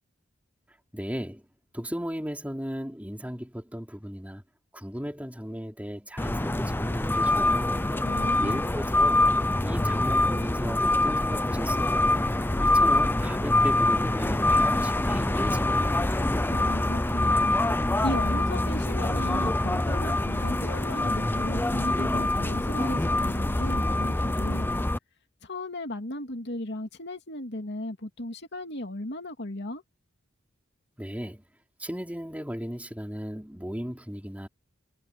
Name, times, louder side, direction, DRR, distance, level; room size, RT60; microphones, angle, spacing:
voice 1, 0.9-1.4 1.7-4.4 4.7-7.8 8.4-9.2 9.6-12.1 12.3-16.1 31.0-31.4 31.8-34.5, equal, 10° right, 3.9 m, -36 dB
sound 1, 6.2-25.0, left 2 dB, 10° left, 0.6 m, -25 dB
voice 2, 8.0-8.6 16.5-24.8 25.4-29.8, left 1 dB, 60° left, 2.6 m, -36 dB
head